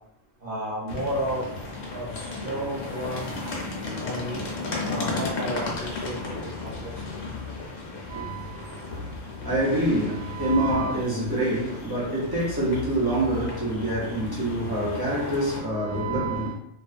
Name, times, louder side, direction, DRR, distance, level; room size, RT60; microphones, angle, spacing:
voice 1, 0.4-1.5 1.9-3.3 4.0-4.5 4.8-6.2 6.4-7.3, equal, 50° right, 0.8 m, -32 dB
sound 1, 0.9-15.6, left 3 dB, 65° left, 0.9 m, -35 dB
voice 2, 8.1-16.5, right 1 dB, 30° right, 0.4 m, -26 dB
2.4 x 2.2 x 2.4 m
omnidirectional pair, 1.3 m